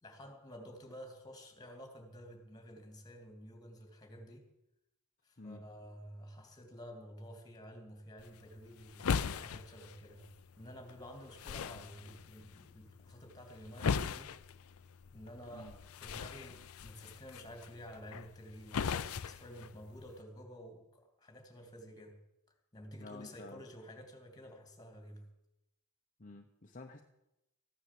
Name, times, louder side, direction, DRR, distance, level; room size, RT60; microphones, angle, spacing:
voice 1, 0.0-4.5 5.2-10.3 10.6-14.4 15.1-22.2 22.7-25.3, equal, 20° left, 4 dB, 2.6 m, -51 dB
sound 1, 8.2-20.2, left 6 dB, 75° left, 0.5 m, -40 dB
voice 2, 23.0-23.6 26.2-27.0, left 3 dB, 35° left, 3 dB, 0.9 m, -50 dB
14.5 x 9.7 x 7.6 m, 0.88 s
head